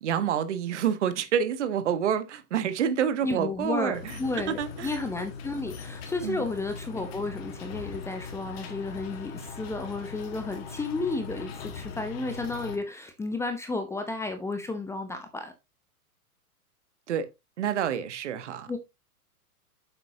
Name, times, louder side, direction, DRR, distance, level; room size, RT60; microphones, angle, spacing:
voice 1, 0.0-4.0 4.5-5.0 6.2-6.4 17.1-17.3 17.6-18.7, right 8 dB, 50° right, 1.5 m, -28 dB
voice 2, 3.2-15.5 18.7-18.8, left 3 dB, 5° left, 0.8 m, -32 dB
sound 1, 3.9-12.8, left 5 dB, 40° left, 1.8 m, -40 dB
9.3 x 7.6 x 2.8 m
figure-of-eight pair, 105°, 45 cm